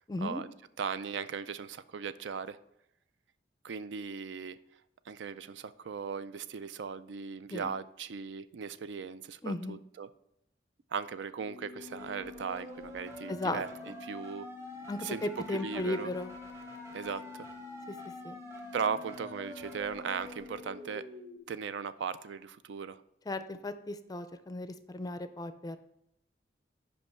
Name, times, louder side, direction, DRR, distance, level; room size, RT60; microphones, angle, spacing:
voice 1, 0.1-0.4 7.5-7.7 9.4-9.8 13.3-13.9 14.9-16.4 17.9-18.4 23.3-25.8, left 2 dB, 20° left, 11 dB, 0.4 m, -36 dB
voice 2, 0.8-2.6 3.6-4.6 5.1-10.1 10.9-13.7 14.0-14.5 15.0-16.1 16.9-17.5 18.7-21.0 21.5-23.0, right 6 dB, 70° right, 14 dB, 0.4 m, -38 dB
sound 1, 11.4-21.4, left 2 dB, 15° right, 1.2 m, -45 dB
5.4 x 5.3 x 5.9 m, 0.79 s
head